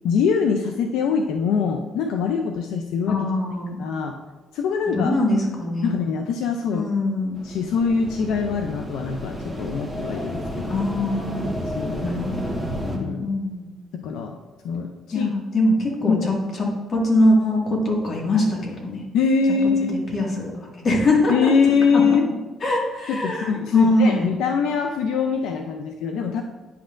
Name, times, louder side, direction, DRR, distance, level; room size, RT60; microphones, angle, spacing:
voice 1, 0.0-3.3 3.8-4.2 4.5-5.1 5.8-6.9 7.4-10.8 11.7-12.1 13.0-13.3 13.9-14.4 14.6-15.3 16.1-16.3 19.1-20.0 21.3-22.3 23.1-26.4, left 5 dB, 85° left, 4 dB, 0.4 m, -23 dB
voice 2, 3.1-3.8 4.9-5.9 6.7-7.4 10.7-11.5 12.0-13.7 14.7-14.8 15.1-19.0 19.9-20.5 20.8-21.5 21.9-22.0 22.6-24.3, left 1 dB, 45° left, -1 dB, 1.8 m, -23 dB
sound 1, 7.3-13.0, equal, 5° left, 1.3 m, -31 dB
9.7 x 5.8 x 2.5 m, 1.2 s
cardioid pair, 105°, 0 cm